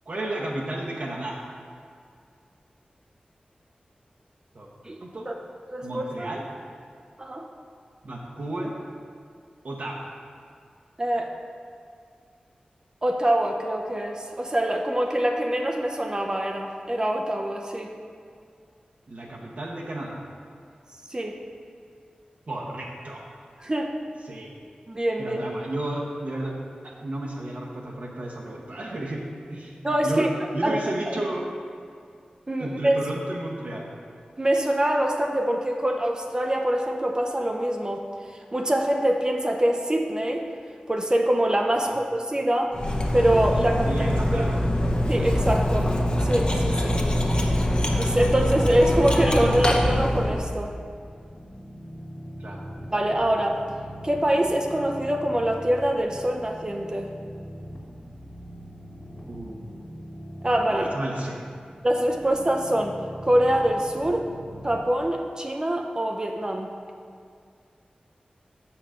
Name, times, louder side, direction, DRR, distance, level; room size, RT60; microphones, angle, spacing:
voice 1, 0.1-1.4 4.5-4.7 5.0-5.3 5.8-6.4 8.0-8.7 9.6-10.1 19.1-20.2 22.5-23.4 24.2-24.5 25.2-26.5 26.8-29.2 29.5-31.4 32.6-33.9 41.8-42.0 43.8-44.9 52.4-52.6 59.3-59.9 60.7-61.4, right 1 dB, 65° right, -3 dB, 0.9 m, -33 dB
voice 2, 5.7-6.3 7.2-7.5 11.0-11.3 13.0-17.9 21.1-21.4 23.6-23.9 24.9-25.4 29.8-30.3 30.6-31.2 32.5-33.0 34.4-38.1 38.5-40.5 40.9-42.7 43.1-44.5 45.1-45.9 46.2-47.0 48.0-50.7 52.9-53.6 54.0-57.1 60.4-60.9 61.8-63.0 63.2-64.3 64.6-66.7, right 1 dB, 30° right, 2 dB, 0.5 m, -24 dB
Cutlery silverware, 42.7-50.5, left 1 dB, 35° left, 0.8 m, -24 dB
sound 1, 46.9-64.8, equal, 60° left, 1.6 m, -42 dB
6.9 x 5.8 x 4.9 m, 2.3 s
wide cardioid pair, 75°, 3 cm